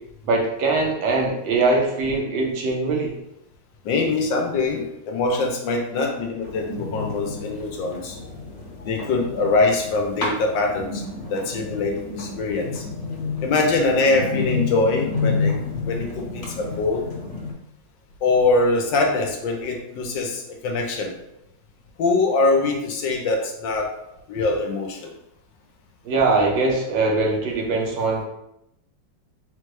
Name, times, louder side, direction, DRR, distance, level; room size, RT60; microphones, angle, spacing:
voice 1, 0.2-3.2 26.0-28.2, right 3 dB, 75° right, 0 dB, 1.5 m, -22 dB
voice 2, 3.8-8.2 8.8-11.0 11.3-12.8 13.4-15.6 15.8-17.1 18.2-21.1 22.0-24.0 24.3-25.1, left 3 dB, 75° left, 1 dB, 1.4 m, -23 dB
sound 1, 6.4-17.5, left 4 dB, 50° left, 1.3 m, -30 dB
4.1 x 2.2 x 4.6 m, 0.82 s
omnidirectional pair, 2.1 m